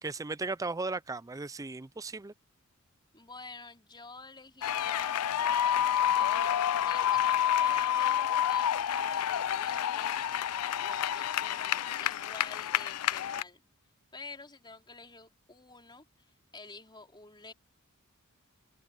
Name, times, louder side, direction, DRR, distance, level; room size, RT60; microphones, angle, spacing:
voice 1, 0.0-2.3, right 3 dB, 15° right, 0.4 m, -36 dB
voice 2, 3.1-5.3 6.1-10.3 10.8-13.6 14.1-17.5, left 3 dB, 20° left, 4.5 m, -49 dB
sound 1, 4.6-13.4, left 10 dB, 90° left, 0.5 m, -29 dB
open air
head